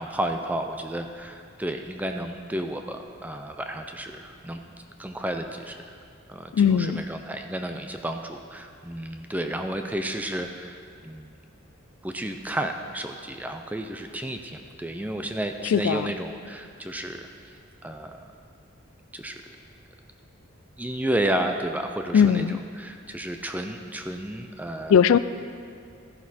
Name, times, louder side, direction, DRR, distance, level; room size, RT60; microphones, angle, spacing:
voice 1, 0.0-4.6 5.0-5.8 6.3-11.4 12.0-17.2 17.8-18.2 19.1-19.4 20.8-24.9, right 1 dB, 10° right, 5 dB, 0.5 m, -32 dB
voice 2, 6.5-7.0 15.6-16.1 22.1-22.6 24.9-25.2, left 7 dB, 80° left, 15 dB, 0.3 m, -19 dB
14.5 x 10.5 x 4.2 m, 2.3 s
head